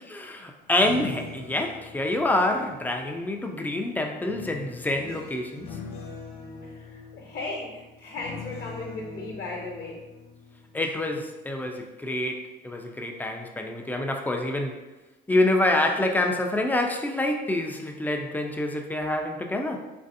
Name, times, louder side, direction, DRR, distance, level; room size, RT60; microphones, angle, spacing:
voice 1, 0.0-5.7 10.7-14.8 15.3-19.9, left 1 dB, 10° left, 3 dB, 0.4 m, -27 dB
sound 1, 0.6-3.5 4.3-11.2 11.6-11.9, left 5 dB, 90° left, 0.5 m, -43 dB
voice 2, 6.6-10.0, left 2 dB, 50° left, -3 dB, 0.8 m, -36 dB
3.1 x 2.6 x 2.6 m, 1.1 s
supercardioid pair, 75°, 21 cm